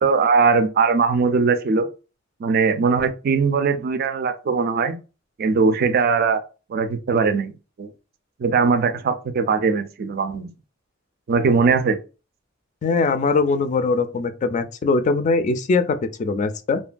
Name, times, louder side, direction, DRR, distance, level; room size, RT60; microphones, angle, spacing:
voice 1, 0.0-1.9 2.4-5.0 5.4-6.4 6.7-7.5 7.8-7.9 8.4-10.5 11.3-12.0, right 5 dB, 50° right, 0.4 m, -20 dB
voice 2, 12.8-16.8, left 3 dB, 40° left, 0.3 m, -21 dB
2.9 x 2.2 x 2.5 m
head